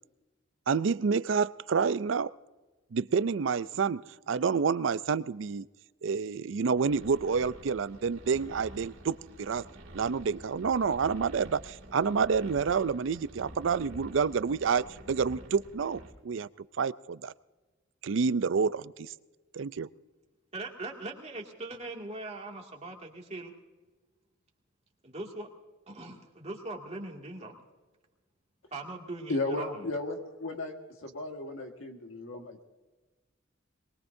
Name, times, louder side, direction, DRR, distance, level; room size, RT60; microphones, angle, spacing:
voice 1, 0.7-2.3 2.9-5.7 6.0-9.6 9.9-16.5 16.8-17.3 18.0-19.1 19.5-19.9, right 5 dB, 65° right, 17 dB, 0.4 m, -28 dB
sound 1, 6.8-16.1, right 1 dB, 90° right, 2.4 m, -48 dB
voice 2, 20.5-23.5 25.0-25.5 25.9-27.6 28.7-29.9, right 2 dB, 35° right, 1 dB, 2.3 m, -40 dB
voice 3, 29.3-30.7 31.0-32.6, left 2 dB, 80° left, 3 dB, 1.7 m, -35 dB
23.0 x 21.0 x 2.7 m, 1.2 s
head